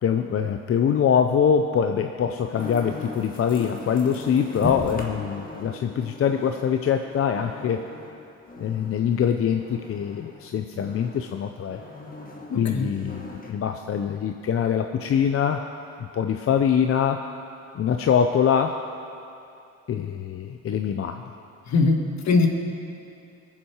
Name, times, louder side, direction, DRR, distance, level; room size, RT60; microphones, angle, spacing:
voice 1, 0.0-7.8 8.6-11.8 12.5-15.6 16.0-17.2 17.7-18.8 19.9-21.2, left 7 dB, 50° left, 6 dB, 0.6 m, -24 dB
sound 1, 2.5-10.4 10.8-13.5, left 2 dB, 30° left, 1.7 m, -38 dB
voice 2, 12.5-12.9 21.7-22.5, left 3 dB, 65° left, 4 dB, 1.5 m, -21 dB
20.5 x 7.5 x 4.7 m, 2.6 s
cardioid pair, 90°, 30 cm